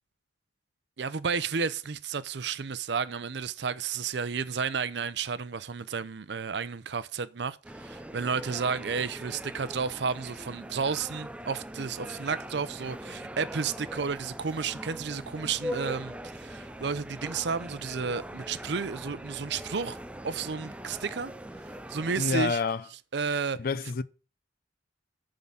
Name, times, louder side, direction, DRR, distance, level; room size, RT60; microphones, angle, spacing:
voice 1, 1.0-20.0 20.2-21.3 21.9-22.6 23.1-23.6, right 5 dB, 65° right, 0.6 m, -32 dB
sound 1, 7.6-22.5, equal, 5° right, 0.4 m, -41 dB
voice 2, 22.2-22.9 23.6-24.0, left 4 dB, 50° left, 0.5 m, -28 dB
9.4 x 3.8 x 7.1 m
head